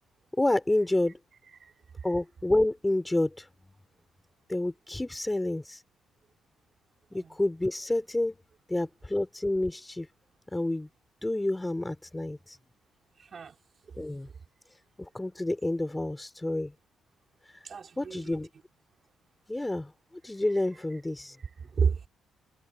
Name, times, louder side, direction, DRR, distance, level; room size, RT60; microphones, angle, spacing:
voice 1, 0.4-1.2 2.0-3.4 4.5-5.8 7.1-8.4 8.7-10.1 10.5-10.9 11.2-12.4 14.0-14.3 15.1-16.7 18.0-18.5 19.5-19.9 20.2-21.3, left 1 dB, 10° left, 4.5 m, -29 dB
voice 2, 13.2-13.5 17.6-18.4 21.7-22.1, right 6 dB, 45° right, 3.0 m, -31 dB
cardioid pair, 90°, 0 cm